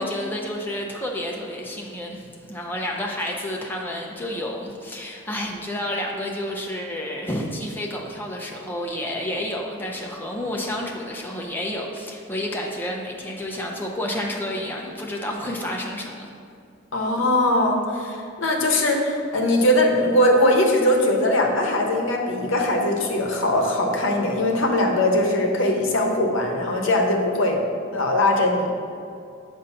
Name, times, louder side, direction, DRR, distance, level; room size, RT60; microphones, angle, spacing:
voice 1, 0.0-16.3, left 1 dB, 10° left, -1 dB, 0.5 m, -30 dB
voice 2, 16.9-27.6 27.9-28.7, left 1 dB, 70° left, 1 dB, 0.8 m, -21 dB
6.8 x 2.6 x 5.5 m, 2.5 s
head